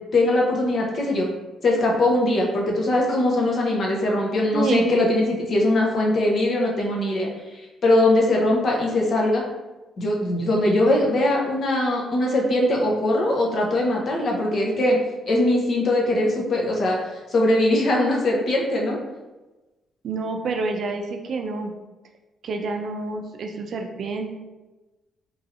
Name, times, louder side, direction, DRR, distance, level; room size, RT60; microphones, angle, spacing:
voice 1, 0.1-1.3 1.6-9.4 10.0-15.0 15.3-19.0, left 1 dB, 50° left, -1 dB, 0.8 m, -21 dB
voice 2, 4.5-4.8 20.0-21.7 22.4-24.3, right 4 dB, 60° right, 3 dB, 0.4 m, -28 dB
3.1 x 2.7 x 2.6 m, 1.1 s
cardioid pair, 90°, 0 cm